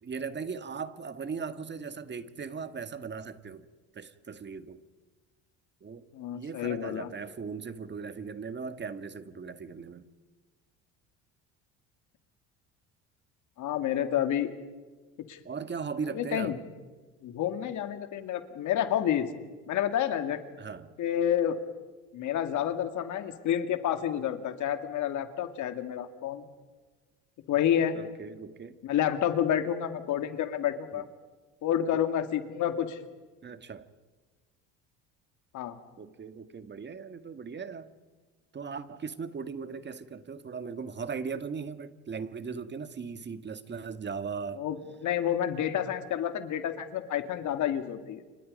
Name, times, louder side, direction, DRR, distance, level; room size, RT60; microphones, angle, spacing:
voice 1, 0.0-3.6 3.9-4.8 5.8-6.1 6.3-10.0 15.4-16.6 20.6-21.0 27.9-28.8 30.9-31.0 31.9-32.1 33.4-33.9 36.0-37.9 38.5-44.6, right 5 dB, 30° right, 11 dB, 1.7 m, -38 dB
voice 2, 6.1-7.1 13.6-14.5 15.3-15.4 16.1-16.6 17.2-19.3 19.7-20.4 21.0-21.6 22.1-26.5 27.5-28.0 28.8-31.0 31.6-33.0 35.5-35.8 44.6-48.2, left 10 dB, 60° left, 8 dB, 2.3 m, -29 dB
29.5 x 25.5 x 5.4 m, 1.3 s
supercardioid pair, 80°, 33 cm